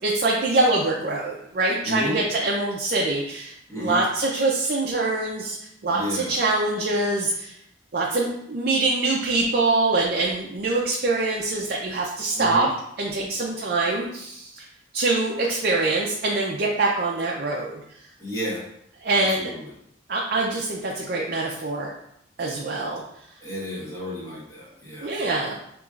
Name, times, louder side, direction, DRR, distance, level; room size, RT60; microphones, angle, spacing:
voice 1, 0.0-5.6 5.8-7.6 7.9-12.7 13.0-14.6 14.9-17.8 19.0-19.5 20.1-21.9 22.4-23.0 25.0-25.6, right 2 dB, 50° right, -2 dB, 0.5 m, -24 dB
voice 2, 1.8-2.2 3.7-4.0 5.8-6.3 12.3-12.7 18.2-18.6 19.1-19.7 23.4-25.1, left 1 dB, 15° left, -6 dB, 1.1 m, -32 dB
5.8 x 3.0 x 2.4 m, 0.74 s
head